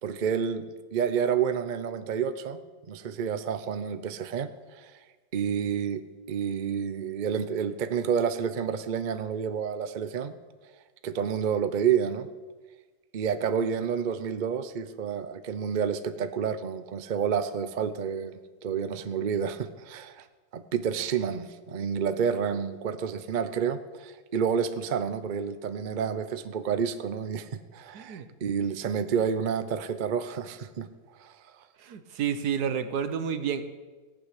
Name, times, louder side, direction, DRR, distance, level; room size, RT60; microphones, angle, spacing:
voice 1, 0.0-2.6 2.9-4.9 5.3-10.3 11.0-12.3 13.1-20.2 20.5-30.9 31.2-31.3, right 7 dB, 45° right, 11 dB, 0.6 m, -29 dB
voice 2, 27.9-28.3 31.8-33.6, right 7 dB, 75° right, 10 dB, 1.5 m, -30 dB
17.5 x 6.2 x 8.3 m, 1.3 s
omnidirectional pair, 1.7 m